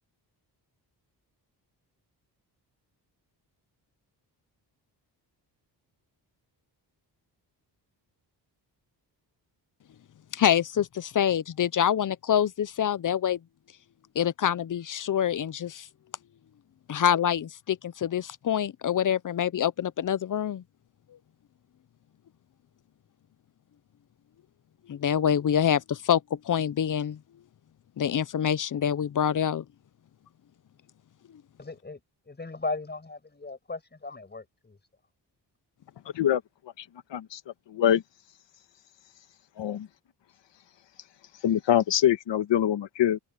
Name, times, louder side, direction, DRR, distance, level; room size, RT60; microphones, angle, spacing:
voice 1, 10.3-13.4 14.2-15.9 16.9-20.6 24.9-27.2 28.0-29.6, left 9 dB, 50° left, 0.6 m, -26 dB
voice 2, 31.6-32.0 32.3-34.8, left 3 dB, 25° left, 6.3 m, -37 dB
voice 3, 37.7-38.0 39.6-39.9 41.4-43.2, left 11 dB, 85° left, 1.5 m, -24 dB
wide cardioid pair, 130°, 42 cm